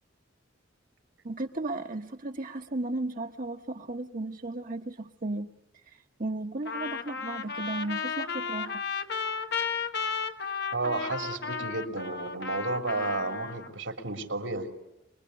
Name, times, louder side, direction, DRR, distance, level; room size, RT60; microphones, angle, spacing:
voice 1, 1.2-5.5 5.9-8.8, right 2 dB, 45° right, 1.0 m, -35 dB
Trumpet, 6.7-13.7, left 5 dB, 60° left, 1.3 m, -34 dB
voice 2, 10.7-14.7, right 3 dB, 85° right, 3.2 m, -32 dB
25.0 x 22.0 x 9.6 m
head